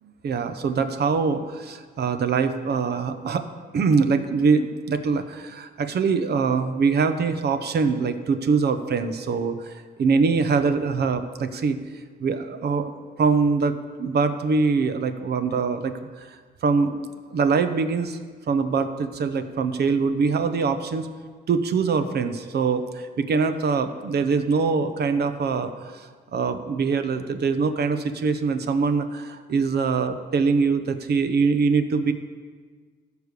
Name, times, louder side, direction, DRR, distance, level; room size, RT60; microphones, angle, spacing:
voice 1, 0.2-3.4 3.7-9.7 10.0-11.8 12.2-12.9 13.2-16.4 16.6-18.2 18.5-21.1 21.5-32.1, right 5 dB, 55° right, 9 dB, 0.8 m, -23 dB
14.0 x 5.0 x 6.7 m, 1.5 s
cardioid pair, 90°, 20 cm